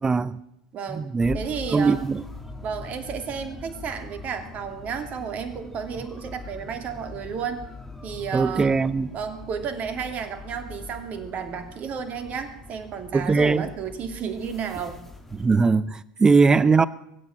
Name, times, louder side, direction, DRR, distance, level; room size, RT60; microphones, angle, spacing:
voice 1, 0.0-0.4 0.9-1.4 1.7-2.2 8.3-9.1 13.1-13.7 15.4-16.9, right 4 dB, 20° right, 0.6 m, -20 dB
voice 2, 0.7-1.1 1.3-2.0 2.6-7.7 8.0-8.7 9.1-15.0, right 6 dB, 40° right, 2.5 m, -32 dB
sound 1, 1.2-15.6, left 3 dB, 10° left, 2.7 m, -42 dB
22.5 x 8.2 x 7.4 m
figure-of-eight pair, 75°, 4 cm